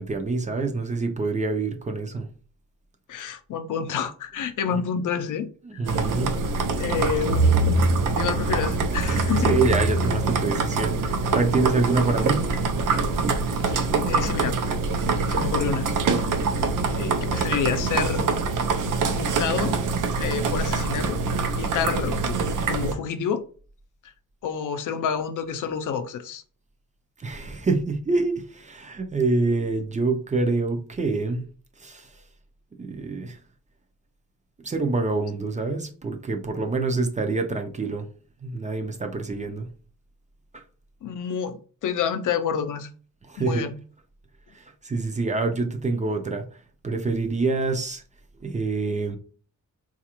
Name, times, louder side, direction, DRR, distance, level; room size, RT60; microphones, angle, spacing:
voice 1, 0.0-2.3 4.7-4.8 5.6-6.3 9.4-12.4 27.2-31.4 31.8-32.1 32.8-33.4 34.6-38.1 38.4-39.7 40.5-40.6 43.3-43.7 44.5-46.4 46.8-48.0 48.4-49.2, right 3 dB, 25° right, 0.4 m, -26 dB
voice 2, 3.1-6.1 6.8-7.5 8.1-9.5 13.5-14.6 15.3-16.3 16.9-18.3 19.1-19.7 20.2-21.2 21.6-22.3 22.7-23.4 24.4-26.4 41.0-42.9 43.4-43.8, left 7 dB, 70° left, 0.5 m, -29 dB
sound 1, 5.9-22.9, right 3 dB, 75° right, 0.5 m, -24 dB
4.0 x 2.4 x 2.9 m
wide cardioid pair, 140°, 32 cm